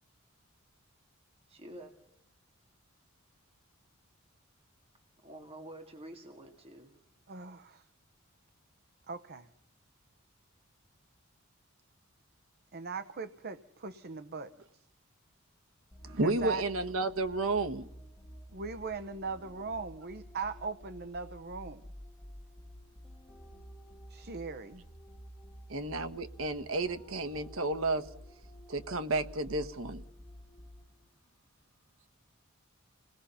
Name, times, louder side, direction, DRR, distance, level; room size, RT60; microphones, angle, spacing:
voice 1, 1.5-1.9 5.2-7.0, right 1 dB, 30° right, 2.2 m, -48 dB
voice 2, 7.3-7.9 9.1-9.5 12.7-14.8 16.2-16.6 18.5-21.8 24.1-24.8, right 4 dB, 50° right, 0.8 m, -39 dB
sound 1, 15.9-31.1, equal, ahead, 5.2 m, -51 dB
voice 3, 16.0-17.9 25.7-28.0 28.7-30.0, right 2 dB, 75° right, 1.3 m, -32 dB
28.0 x 19.0 x 5.7 m
head